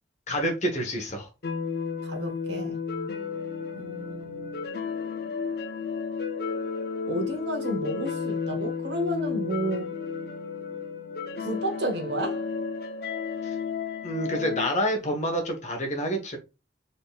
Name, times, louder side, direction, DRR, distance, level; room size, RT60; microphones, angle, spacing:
voice 1, 0.3-1.3 14.0-16.4, equal, 40° left, 1.4 m, -28 dB
sound 1, 1.4-14.7, left 5 dB, 55° left, 0.7 m, -32 dB
voice 2, 2.0-2.8 3.7-4.7 7.1-9.9 11.4-12.4, right 1 dB, 70° right, 1.2 m, -32 dB
4.1 x 3.8 x 2.4 m
head